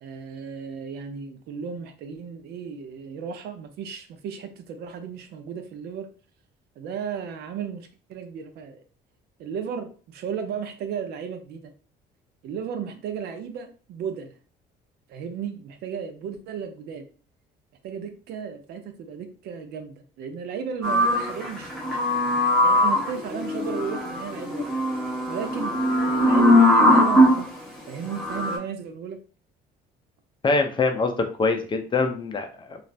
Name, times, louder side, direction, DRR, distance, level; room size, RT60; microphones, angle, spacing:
voice 1, 0.0-6.1 6.8-8.8 9.4-11.7 12.4-14.3 15.1-17.1 17.8-22.2 22.6-24.7 25.3-27.5 27.9-29.2, right 7 dB, 75° right, 7 dB, 0.5 m, -34 dB
sound 1, 20.8-27.4 28.1-28.6, left 1 dB, ahead, 1.0 m, -20 dB
voice 2, 30.4-31.1 31.4-32.8, left 3 dB, 30° left, 5 dB, 0.5 m, -24 dB
2.4 x 2.4 x 3.2 m, 0.38 s
cardioid pair, 110°, 17 cm